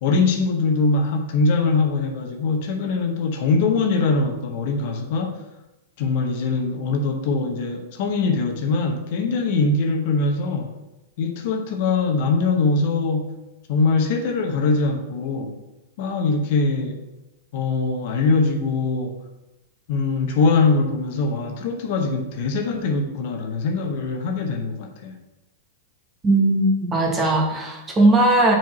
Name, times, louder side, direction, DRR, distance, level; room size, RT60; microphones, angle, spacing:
voice 1, 0.0-5.4 6.0-10.8 11.2-13.4 13.7-15.5 16.0-17.0 17.5-19.2 19.9-25.2, left 3 dB, 60° left, 4 dB, 0.9 m, -22 dB
voice 2, 26.2-28.5, right 2 dB, 20° right, 1 dB, 1.4 m, -18 dB
4.6 x 4.5 x 5.7 m, 0.96 s
hypercardioid pair, 110°, 0 cm